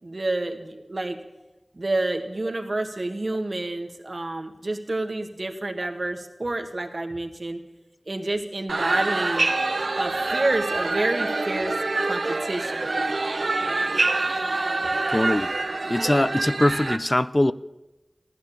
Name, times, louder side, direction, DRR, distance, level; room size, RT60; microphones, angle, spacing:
voice 1, 0.0-1.2 1.7-7.6 8.1-9.5 9.9-11.7 12.0-12.9, right 2 dB, 60° right, 4 dB, 1.8 m, -29 dB
sound 1, 8.7-17.0, right 3 dB, 90° right, 1.0 m, -26 dB
voice 2, 15.1-15.5 15.9-17.5, left 1 dB, 30° left, 14 dB, 0.5 m, -22 dB
16.0 x 10.5 x 8.5 m, 1.0 s
wide cardioid pair, 45°, 0 cm